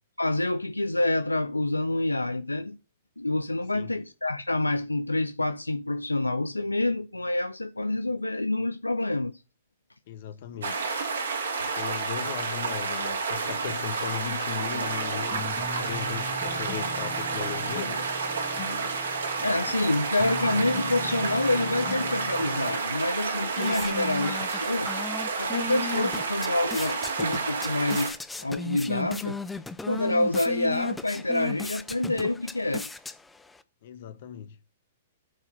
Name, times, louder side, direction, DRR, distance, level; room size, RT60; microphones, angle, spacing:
voice 1, 0.2-2.8 3.2-9.4 11.6-11.7 19.4-24.9 25.4-28.2 28.4-29.4 29.9-32.9, left 2 dB, 90° left, 0.5 m, -27 dB
voice 2, 10.1-10.9 11.7-15.5 15.8-18.1 33.8-34.6, left 9 dB, 55° left, 1.5 m, -37 dB
sound 1, 10.6-28.1, right 4 dB, 70° right, 3.0 m, -30 dB
sound 2, 14.7-22.8, left 4 dB, 30° left, 1.8 m, -40 dB
sound 3, 23.3-33.6, left 3 dB, 10° left, 0.8 m, -37 dB
9.5 x 4.7 x 7.6 m
figure-of-eight pair, 110°, 0 cm